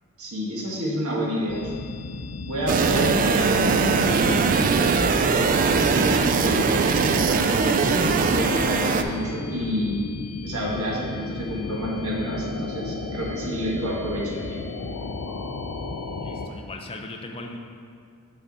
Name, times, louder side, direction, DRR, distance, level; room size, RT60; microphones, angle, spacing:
voice 1, 0.2-1.7 2.4-10.0 10.4-14.6, equal, 70° right, -4 dB, 1.5 m, -29 dB
sound 1, 1.5-16.5, left 3 dB, 70° left, 0.5 m, -34 dB
sound 2, 2.7-9.0, right 5 dB, 40° right, 0.3 m, -21 dB
voice 2, 16.2-17.6, left 2 dB, 25° left, 2 dB, 0.5 m, -38 dB
6.6 x 5.7 x 4.0 m, 2.1 s
head